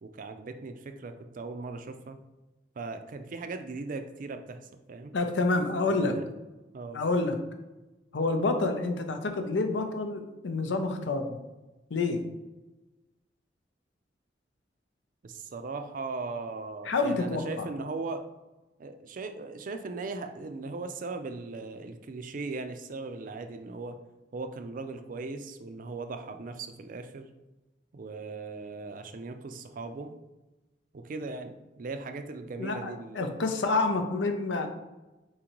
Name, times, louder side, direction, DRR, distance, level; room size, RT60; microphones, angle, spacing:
voice 1, 0.0-2.2 2.8-4.6 4.9-5.1 5.9-6.3 6.7-7.0 15.2-18.2 18.8-24.0 24.3-27.3 27.9-30.1 30.9-33.4, right 3 dB, 50° right, 7 dB, 0.4 m, -38 dB
voice 2, 5.1-6.2 6.9-7.4 8.1-11.4 11.9-12.2 16.8-17.7 32.6-34.7, left 3 dB, 85° left, 6 dB, 0.6 m, -28 dB
4.3 x 3.7 x 3.0 m, 1.1 s
head